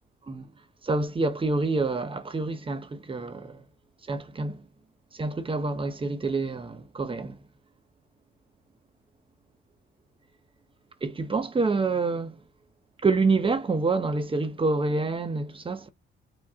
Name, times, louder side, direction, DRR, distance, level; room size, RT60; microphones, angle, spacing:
voice 1, 0.8-3.6 4.1-4.6 5.2-7.4 11.0-12.4 13.0-15.9, right 3 dB, 25° right, 0.8 m, -27 dB
4.8 x 2.3 x 3.5 m
cardioid pair, 90°, 20 cm